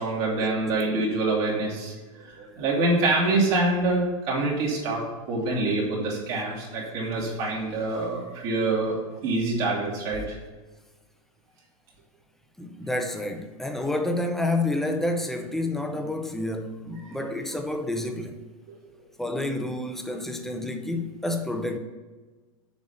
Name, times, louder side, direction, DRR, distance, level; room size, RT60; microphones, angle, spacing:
voice 1, 0.0-9.0 9.2-10.4 17.2-17.4, right 2 dB, 50° right, 2.4 m, -26 dB
voice 2, 12.6-18.4 19.2-21.8, left 2 dB, ahead, 0.6 m, -29 dB
6.9 x 4.2 x 6.6 m
supercardioid pair, 135°, 18 cm